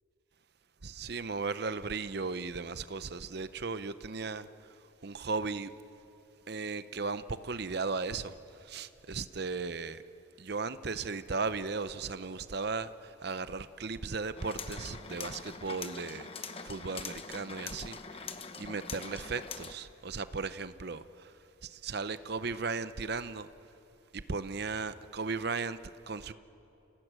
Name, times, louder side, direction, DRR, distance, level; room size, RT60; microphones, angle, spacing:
voice 1, 0.8-5.7 6.5-10.0 10.4-23.5 24.1-26.3, right 4 dB, 50° right, 0.7 m, -36 dB
sound 1, 14.4-19.7, left 5 dB, 30° left, 1.0 m, -43 dB
28.0 x 17.5 x 9.0 m
head